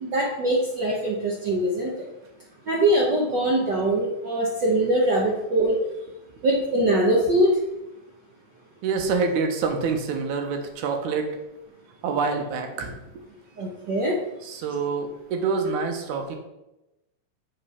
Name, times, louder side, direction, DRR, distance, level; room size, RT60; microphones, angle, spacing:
voice 1, 0.0-2.1 2.7-5.8 6.4-7.5 13.6-14.2, right 1 dB, 75° right, -2 dB, 1.0 m, -22 dB
voice 2, 8.8-11.3 12.0-13.0 14.4-16.4, right 5 dB, 90° right, 4 dB, 2.4 m, -26 dB
7.3 x 4.6 x 5.5 m, 0.94 s
omnidirectional pair, 3.3 m